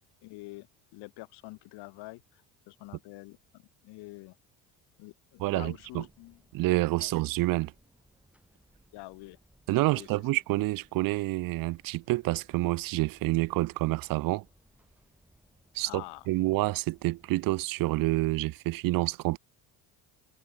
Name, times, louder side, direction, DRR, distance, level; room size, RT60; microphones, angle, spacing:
voice 1, 0.2-0.7 0.9-4.4 5.0-6.4 7.0-7.1 8.9-9.4 9.9-10.1 15.8-16.3, left 22 dB, 80° left, 3.7 m, -46 dB
voice 2, 5.4-6.0 6.5-7.7 9.7-14.4 15.7-19.4, right 19 dB, 60° right, 0.5 m, -28 dB
sound 1, 5.8-17.4, right 1 dB, 5° right, 6.0 m, -64 dB
supercardioid pair, 90°, 39 cm